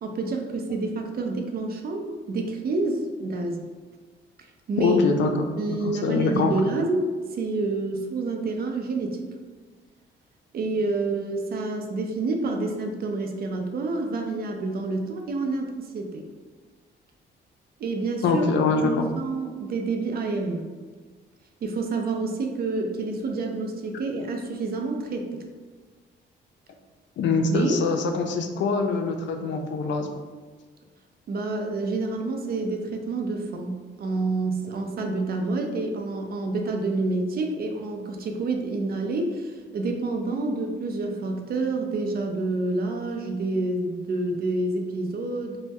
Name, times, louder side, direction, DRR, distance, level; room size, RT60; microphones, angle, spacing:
voice 1, 0.0-3.7 4.7-5.0 5.6-9.3 10.5-16.2 17.8-18.4 18.8-20.7 21.6-25.4 27.5-27.8 31.3-45.6, right 3 dB, 50° right, 3 dB, 0.5 m, -28 dB
voice 2, 4.8-6.5 18.2-19.1 27.2-30.1, left 4 dB, 70° left, 4 dB, 0.4 m, -24 dB
2.6 x 2.1 x 3.4 m, 1.4 s
cardioid pair, 90°, 20 cm